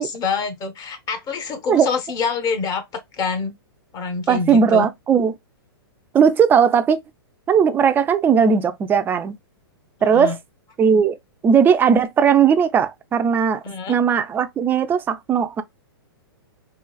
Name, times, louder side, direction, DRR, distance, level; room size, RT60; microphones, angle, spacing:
voice 1, 0.0-3.5 3.9-4.9 10.0-10.4 13.6-14.0, left 5 dB, 30° left, 0.8 m, -26 dB
voice 2, 4.3-5.3 6.1-7.0 7.5-9.4 10.0-10.4 10.8-11.1 11.4-13.6 13.9-15.6, right 7 dB, 15° right, 0.4 m, -17 dB
3.8 x 2.4 x 2.2 m
hypercardioid pair, 125°, 13 cm